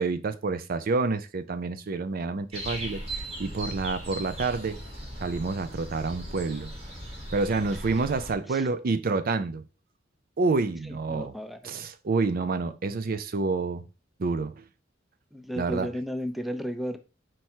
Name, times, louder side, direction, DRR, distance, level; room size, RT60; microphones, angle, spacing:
voice 1, 0.0-4.8 5.2-6.7 7.3-9.6 10.4-11.3 11.6-13.9 14.2-14.6 15.6-15.9, right 3 dB, 50° right, 0.5 m, -28 dB
sound 1, 2.5-8.3, right 1 dB, 30° right, 2.6 m, -38 dB
voice 2, 10.9-11.6 15.3-17.0, equal, ahead, 0.6 m, -33 dB
4.7 x 4.5 x 4.4 m
head